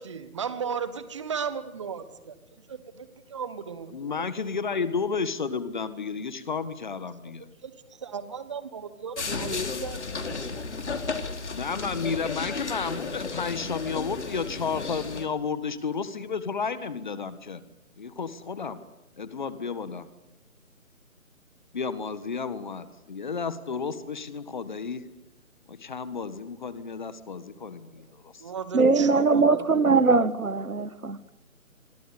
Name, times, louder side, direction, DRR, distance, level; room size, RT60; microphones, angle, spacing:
voice 1, 0.0-2.4 2.7-4.2 7.4-7.7 8.0-10.5 28.4-29.6, right 6 dB, 20° right, 14 dB, 1.4 m, -36 dB
voice 2, 3.9-7.5 11.5-17.6 18.0-18.8 19.2-20.1 21.7-25.0 25.7-28.4, left 5 dB, 30° left, 14 dB, 1.6 m, -32 dB
sound 1, 9.2-15.3, left 4 dB, 50° left, 3.4 m, -33 dB
voice 3, 28.7-31.2, right 4 dB, 70° right, 15 dB, 1.9 m, -21 dB
27.0 x 23.5 x 8.5 m, 0.92 s
figure-of-eight pair, 155°, 44 cm